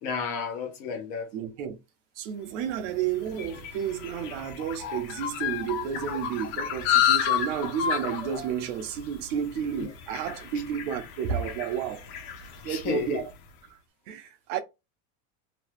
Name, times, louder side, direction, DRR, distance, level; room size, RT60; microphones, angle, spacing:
voice 1, 0.0-1.3 4.3-4.4 9.8-9.9 12.6-13.2, left 6 dB, 20° left, 0.4 m, -32 dB
voice 2, 1.3-1.8 2.2-12.1 12.6-13.3 14.1-14.6, right 8 dB, 55° right, 0.7 m, -31 dB
sound 1, 2.7-13.3, left 9 dB, 55° left, 0.9 m, -31 dB
2.9 x 2.2 x 3.2 m
supercardioid pair, 170°, 45 cm